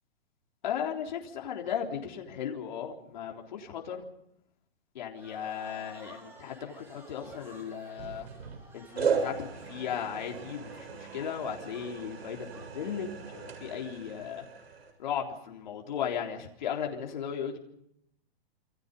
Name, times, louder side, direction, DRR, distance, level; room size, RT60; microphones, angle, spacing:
voice 1, 0.6-4.1 4.9-8.3 8.7-9.4 9.7-14.4 15.0-17.6, left 8 dB, 50° left, 1 dB, 3.8 m, -36 dB
sound 1, 5.1-13.9, right 2 dB, 5° right, 3.0 m, -54 dB
sound 2, 8.0-8.6 9.0-14.9, right 6 dB, 80° right, 7.4 m, -36 dB
28.0 x 25.0 x 5.4 m, 0.75 s
hypercardioid pair, 175°, 31 cm